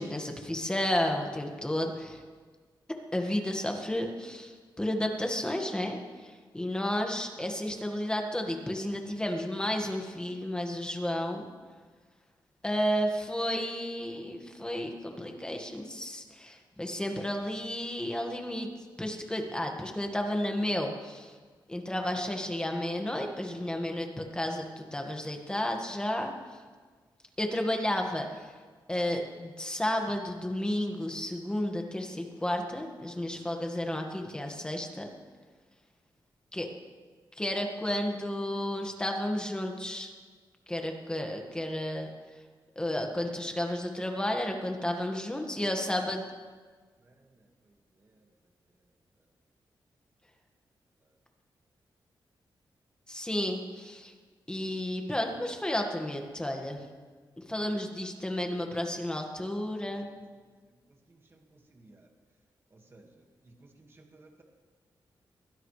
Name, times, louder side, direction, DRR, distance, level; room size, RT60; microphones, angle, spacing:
voice 1, 0.0-2.2 3.1-4.5 4.8-11.5 12.6-18.7 19.0-21.3 21.7-26.3 27.4-28.3 28.9-35.1 36.5-36.7 37.4-40.1 40.7-42.1 42.8-46.3 53.1-54.1 54.5-56.8 57.5-60.1, left 1 dB, 10° left, 3 dB, 1.8 m, -32 dB
voice 2, 61.1-62.1 62.7-63.1 63.4-64.4, right 2 dB, 30° right, 2 dB, 1.9 m, -57 dB
22.5 x 16.5 x 3.3 m, 1.5 s
wide cardioid pair, 130°, 8 cm